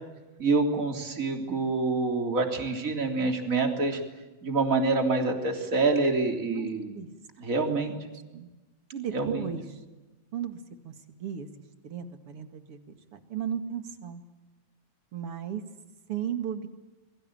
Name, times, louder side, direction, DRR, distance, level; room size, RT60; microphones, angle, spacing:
voice 1, 0.4-4.0 4.4-6.9 7.4-7.9 9.1-9.5, right 3 dB, 25° right, 4 dB, 3.5 m, -26 dB
voice 2, 7.7-8.5 8.9-9.8 10.3-10.6 10.8-11.5 11.8-12.8 13.1-14.2 15.1-15.6 16.1-16.7, right 8 dB, 45° right, 8 dB, 2.6 m, -35 dB
28.5 x 23.0 x 8.8 m, 1.1 s
omnidirectional pair, 4.0 m